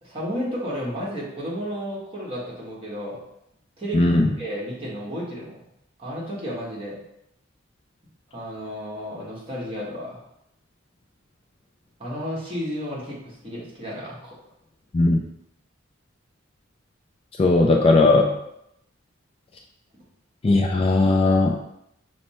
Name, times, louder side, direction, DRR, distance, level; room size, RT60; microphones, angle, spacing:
voice 1, 0.0-3.2 3.8-5.6 6.0-7.0 8.3-10.3 12.0-14.4, equal, 30° right, -6 dB, 1.4 m, -32 dB
voice 2, 3.9-4.3 14.9-15.2 17.4-18.4 20.4-21.7, left 2 dB, 30° left, 2 dB, 0.3 m, -18 dB
5.5 x 2.1 x 4.2 m, 0.79 s
head